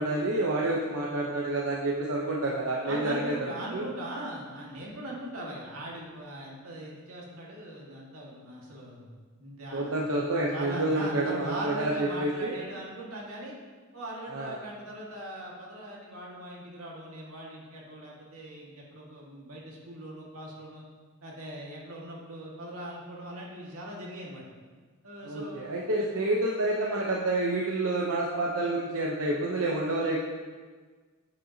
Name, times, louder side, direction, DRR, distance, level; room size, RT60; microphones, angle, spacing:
voice 1, 0.0-3.5 3.7-3.8 9.7-12.6 14.3-14.6 25.2-30.2, right 2 dB, 70° right, -3 dB, 0.9 m, -28 dB
voice 2, 2.8-9.1 9.4-13.6 13.9-20.8 21.2-24.4 25.0-26.1, right 1 dB, 90° right, -3 dB, 1.9 m, -40 dB
8.5 x 7.8 x 2.9 m, 1.5 s
head